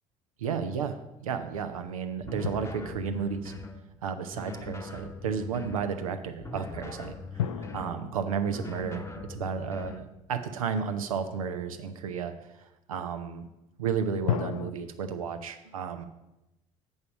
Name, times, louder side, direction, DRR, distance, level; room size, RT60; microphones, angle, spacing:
voice 1, 0.4-0.9 1.3-3.5 4.0-12.3 12.6-13.5 13.8-16.1, right 6 dB, 75° right, 8 dB, 0.7 m, -33 dB
sound 1, 2.2-3.8 4.3-5.9 6.4-8.0 8.5-10.1, left 2 dB, 15° left, 0.9 m, -41 dB
sound 2, 2.4-4.4 7.4-10.7 14.3-14.7, left 9 dB, 75° left, 0.4 m, -36 dB
7.1 x 5.3 x 7.1 m, 0.95 s
figure-of-eight pair, 55°, 18 cm